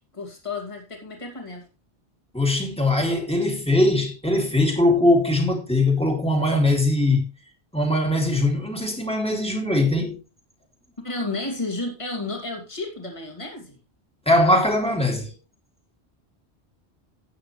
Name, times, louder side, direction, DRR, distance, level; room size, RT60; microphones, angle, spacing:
voice 1, 0.1-1.6 11.0-13.8, left 2 dB, 30° left, 2.6 m, -32 dB
voice 2, 2.3-7.3 7.7-10.2 14.3-15.3, left 1 dB, 5° left, 2.5 m, -21 dB
13.0 x 8.8 x 3.2 m
omnidirectional pair, 1.1 m